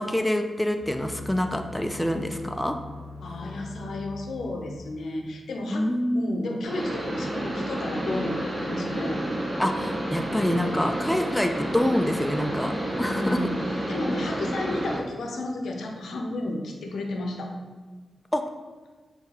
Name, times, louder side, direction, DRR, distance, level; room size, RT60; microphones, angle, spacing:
voice 1, 0.0-2.8 5.7-6.3 9.6-13.4 18.3-18.4, left 1 dB, 5° left, 5 dB, 0.4 m, -26 dB
sound 1, 0.8-5.2, left 3 dB, 20° left, 1.4 m, -41 dB
voice 2, 3.2-5.9 6.1-9.2 13.0-17.5, left 2 dB, 80° left, 2 dB, 0.6 m, -32 dB
sound 2, 6.6-15.0, right 1 dB, 25° right, 1.1 m, -30 dB
5.6 x 2.8 x 2.8 m, 1.4 s
cardioid pair, 55°, 0 cm